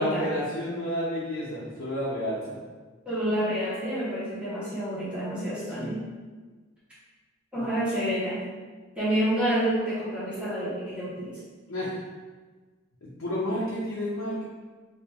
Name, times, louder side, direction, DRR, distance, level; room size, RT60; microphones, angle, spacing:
voice 1, 0.0-2.6 7.5-7.7 11.7-12.0 13.0-14.4, equal, 80° left, -7 dB, 0.7 m, -30 dB
voice 2, 3.0-6.0 7.5-8.4 8.9-11.4, equal, 5° right, -11 dB, 1.3 m, -28 dB
2.8 x 2.7 x 3.4 m, 1.4 s
head